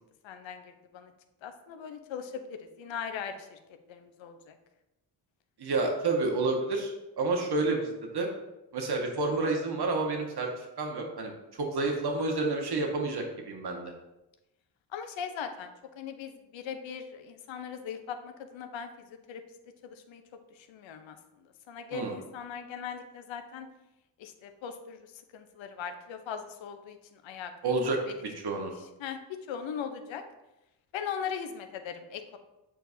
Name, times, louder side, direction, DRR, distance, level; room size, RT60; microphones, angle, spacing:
voice 1, 0.2-1.1 1.4-3.6 3.9-4.6 14.9-19.4 19.8-20.2 20.5-23.7 24.2-27.5 28.1-28.2 29.0-30.2 30.9-32.4, left 7 dB, 70° left, 7 dB, 0.8 m, -40 dB
voice 2, 5.6-8.3 8.7-11.3 11.6-13.9 21.9-22.1 27.6-28.0 28.4-28.7, right 3 dB, 55° right, 2 dB, 1.4 m, -29 dB
7.6 x 4.6 x 2.7 m, 0.97 s
hypercardioid pair, 40°, 47 cm